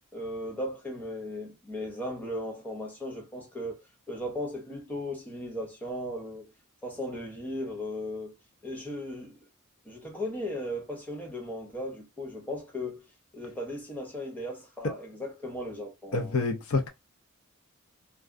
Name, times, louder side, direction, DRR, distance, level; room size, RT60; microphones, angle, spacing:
voice 1, 0.1-6.5 6.8-8.3 8.6-9.4 9.8-13.0 13.3-16.3, left 1 dB, 10° left, 0.7 m, -37 dB
voice 2, 16.1-16.9, left 3 dB, 80° left, 0.6 m, -27 dB
2.3 x 2.2 x 2.4 m
head